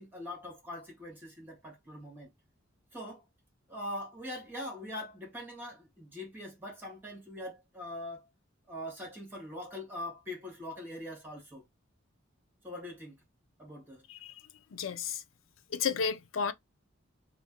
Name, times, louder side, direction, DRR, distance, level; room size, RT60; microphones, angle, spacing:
voice 1, 0.0-2.3 2.9-3.2 3.7-8.3 8.7-11.6 12.6-13.2 13.6-14.0, left 1 dB, 10° right, 1.8 m, -42 dB
voice 2, 14.7-15.2 15.7-16.5, left 6 dB, 90° left, 0.5 m, -32 dB
3.2 x 2.5 x 4.3 m
head